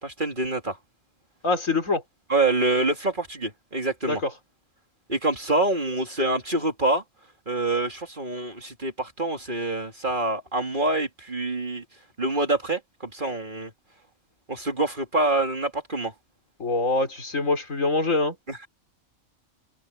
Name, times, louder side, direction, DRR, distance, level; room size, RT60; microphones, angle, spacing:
voice 1, 0.0-0.8 2.3-4.2 5.1-7.0 7.5-11.8 12.2-13.7 14.5-16.1 18.5-18.7, right 2 dB, 35° right, 2.8 m, -26 dB
voice 2, 1.4-2.0 4.1-4.3 16.6-18.4, left 3 dB, 65° left, 4.4 m, -24 dB
open air
omnidirectional pair, 1.5 m